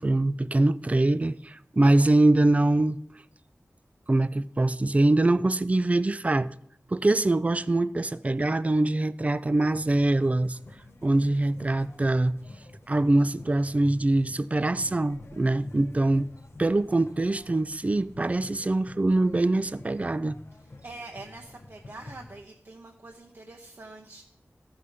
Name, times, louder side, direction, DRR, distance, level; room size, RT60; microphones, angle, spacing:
voice 1, 0.0-3.0 4.1-6.5 6.9-10.6 11.0-12.4 12.9-16.3 16.6-20.4, right 2 dB, 25° right, 0.3 m, -23 dB
sound 1, 9.6-22.4, left 2 dB, 50° left, 0.8 m, -48 dB
voice 2, 20.6-24.2, right 2 dB, 50° right, 0.8 m, -45 dB
13.5 x 5.5 x 5.0 m
wide cardioid pair, 85°, 5 cm